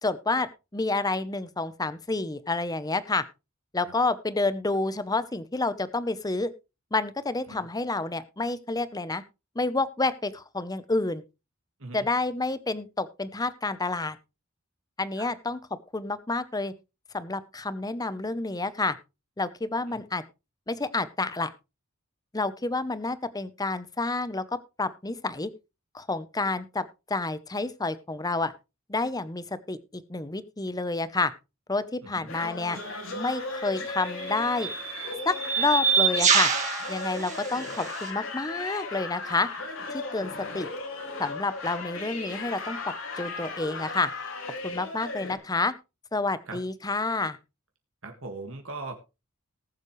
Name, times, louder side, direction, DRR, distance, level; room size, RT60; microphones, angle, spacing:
voice 1, 0.0-3.2 3.7-6.5 6.9-9.2 9.5-11.2 11.9-14.2 15.0-15.6 15.9-16.7 17.1-19.0 19.4-20.2 20.7-21.5 22.3-24.4 24.8-25.5 25.9-28.5 28.9-31.3 31.7-32.8 33.1-34.7 35.2-36.5 36.9-39.5 39.9-40.7 41.2-42.8 43.2-44.1 44.6-45.7 46.1-47.4, left 3 dB, 20° left, 15 dB, 0.8 m, -29 dB
sound 1, 32.3-45.4, left 3 dB, 75° left, 3.7 m, -36 dB
sound 2, 32.7-32.9 33.9-38.1, right 6 dB, 35° right, 2.9 m, -26 dB
voice 2, 48.0-48.9, right 3 dB, 70° right, 4 dB, 2.0 m, -40 dB
19.0 x 7.4 x 3.2 m, 0.28 s
head